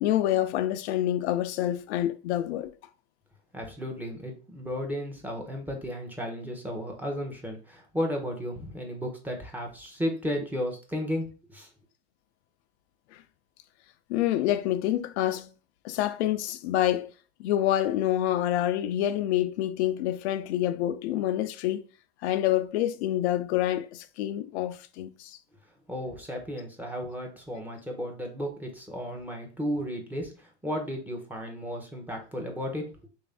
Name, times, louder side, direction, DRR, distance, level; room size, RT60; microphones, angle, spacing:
voice 1, 0.0-2.7 13.1-13.2 14.1-15.5 15.8-17.1 17.4-21.9 22.2-25.4, left 12 dB, 75° left, 0.5 m, -27 dB
voice 2, 3.5-11.7 25.9-32.9, equal, 5° right, 0.7 m, -34 dB
3.2 x 2.6 x 3.3 m
supercardioid pair, 130°, 34 cm